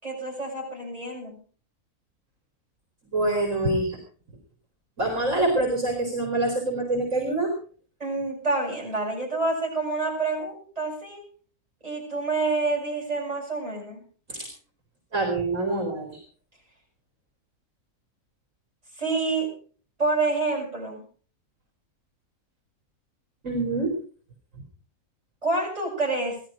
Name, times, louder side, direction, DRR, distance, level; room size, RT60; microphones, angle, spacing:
voice 1, 0.0-1.4 8.0-11.2 11.8-14.0 19.0-19.5 20.0-21.0 25.4-26.4, right 3 dB, 25° right, -3 dB, 7.6 m, -27 dB
voice 2, 3.1-4.0 5.0-7.5 14.3-14.5 15.1-16.2 23.4-23.9, right 2 dB, 55° right, 1 dB, 3.7 m, -25 dB
17.0 x 13.0 x 5.0 m, 0.43 s
omnidirectional pair, 1.6 m